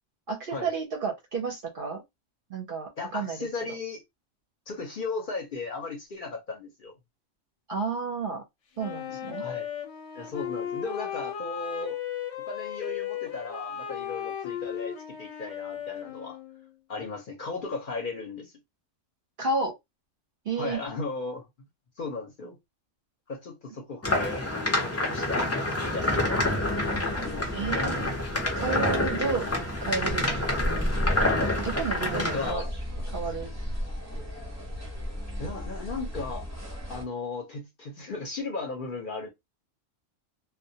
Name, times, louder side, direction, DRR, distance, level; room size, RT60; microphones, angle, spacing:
voice 1, 0.3-2.0 2.5-3.5 7.7-8.4 8.8-9.5 19.4-19.8 20.4-20.8 27.5-28.2 28.5-29.5 29.8-30.6 31.6-32.6 33.1-33.5, right 4 dB, 55° right, 0.6 m, -31 dB
voice 2, 3.0-4.0 4.7-6.9 9.4-9.7 10.1-12.0 12.5-16.4 16.9-18.5 20.6-21.5 22.0-22.6 23.3-24.5 24.8-26.5 27.1-28.0 32.1-32.7 33.0-33.1 35.4-36.5 36.9-39.3, left 3 dB, 55° left, 0.7 m, -36 dB
Wind instrument woodwind instrument, 8.8-16.8, left 10 dB, 90° left, 1.1 m, -36 dB
sound 1, 24.0-32.5, left 1 dB, 25° left, 0.3 m, -27 dB
sound 2, 26.6-37.0, equal, 20° right, 0.6 m, -35 dB
2.2 x 2.1 x 2.6 m
omnidirectional pair, 1.3 m